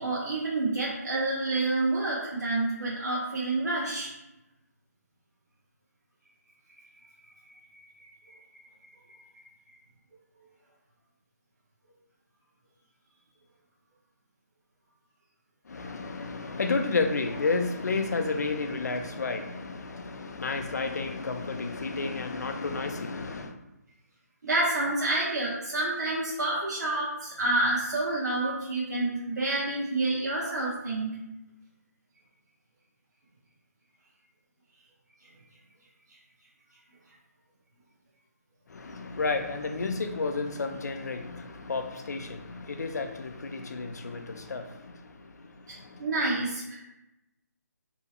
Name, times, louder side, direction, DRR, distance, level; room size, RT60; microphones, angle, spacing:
voice 1, 0.0-4.1 7.7-7.8 8.3-8.4 9.1-9.4 24.4-31.2 45.7-46.8, right 2 dB, 90° right, -6 dB, 0.8 m, -28 dB
voice 2, 15.7-23.5 38.7-46.1, left 3 dB, 75° left, 6 dB, 0.4 m, -32 dB
2.8 x 2.7 x 2.3 m, 0.95 s
hypercardioid pair, 175°, 9 cm